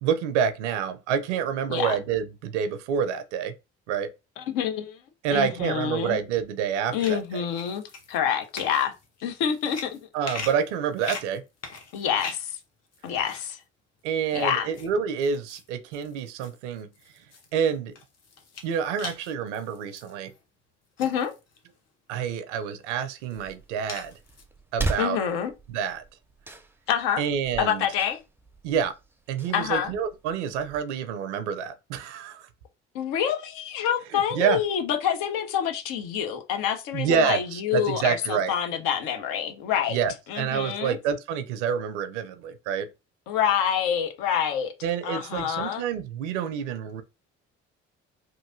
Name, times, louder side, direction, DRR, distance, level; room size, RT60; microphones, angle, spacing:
voice 1, 0.0-3.5 3.9-4.1 5.2-7.4 10.1-11.4 14.0-16.9 17.5-17.9 18.6-20.3 22.1-24.1 24.7-25.2 25.7-26.0 27.2-27.8 28.6-28.9 29.3-32.5 34.1-34.6 36.9-38.5 39.9-42.9 44.8-47.0, right 7 dB, 80° right, 0.5 m, -28 dB
voice 2, 4.4-5.0 5.3-6.2 6.9-7.8 8.1-8.9 9.2-10.0 11.9-12.6 13.0-13.6 14.3-14.7 21.0-21.3 25.0-25.5 26.9-27.2 27.6-28.2 29.5-29.9 32.9-40.0 40.3-41.0 43.3-44.7 45.0-45.8, left 8 dB, 70° left, 0.7 m, -27 dB
sound 1, 7.0-12.6 12.9-13.5 14.1-14.9 15.2-20.4 21.0-21.8 22.3-22.4 22.9-24.4, left 4 dB, 45° left, 1.1 m, -41 dB
sound 2, 23.3-30.8, right 3 dB, 5° right, 0.5 m, -38 dB
3.0 x 2.6 x 2.5 m
hypercardioid pair, 45°, 35 cm